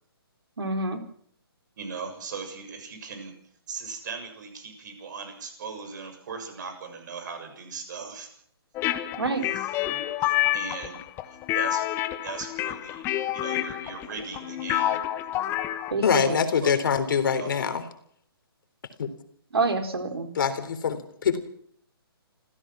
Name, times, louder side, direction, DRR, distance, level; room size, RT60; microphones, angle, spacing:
voice 1, 0.6-1.0 9.2-9.4 15.9-16.4 19.5-20.3, right 3 dB, 75° right, 5 dB, 3.9 m, -27 dB
voice 2, 1.8-3.4 3.7-8.3 9.5-9.7 10.5-11.0 11.5-11.9 12.2-15.0 16.6-16.7 17.3-17.5, right 5 dB, 50° right, 7 dB, 7.1 m, -38 dB
sound 1, 8.7-15.9, left 14 dB, 20° left, 1.2 m, -28 dB
voice 3, 16.0-17.8 19.0-19.1 20.4-21.4, left 7 dB, 55° left, 9 dB, 3.7 m, -24 dB
27.5 x 15.5 x 6.2 m, 0.64 s
hypercardioid pair, 145°, 13 cm